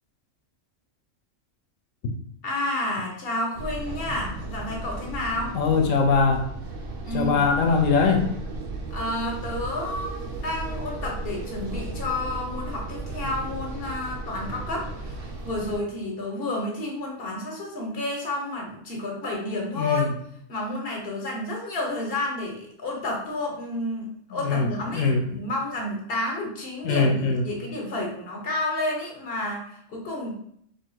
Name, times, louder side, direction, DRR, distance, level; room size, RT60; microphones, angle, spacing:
voice 1, 2.4-5.5 7.0-7.4 8.9-20.1 20.5-30.4, left 2 dB, 50° left, -1 dB, 1.2 m, -30 dB
sound 1, 3.5-15.8, right 2 dB, 80° right, 1.1 m, -35 dB
voice 2, 5.5-6.5 7.1-8.3 19.8-20.1 24.3-25.2 26.8-27.4, left 4 dB, 90° left, 3 dB, 1.0 m, -22 dB
3.6 x 2.7 x 4.5 m, 0.68 s
omnidirectional pair, 1.3 m